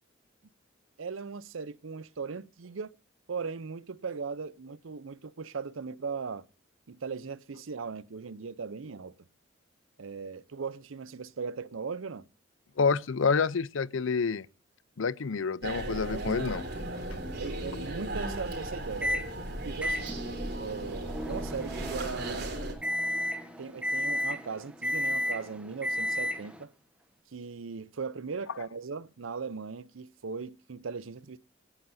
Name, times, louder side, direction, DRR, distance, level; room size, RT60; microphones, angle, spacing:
voice 1, 1.0-2.9 3.3-6.4 6.9-9.1 10.0-12.3 16.1-16.6 17.4-19.2 19.6-20.1 20.6-22.6 23.6-26.7 27.3-31.4, right 5 dB, 85° right, 0.6 m, -38 dB
voice 2, 12.8-14.5 15.0-16.6, left 5 dB, 80° left, 0.6 m, -28 dB
sound 1, 15.6-22.7, right 1 dB, 50° right, 3.6 m, -36 dB
Microwave oven, 19.0-19.3 19.8-26.6, left 1 dB, 5° right, 1.2 m, -33 dB
25.5 x 9.9 x 2.7 m
head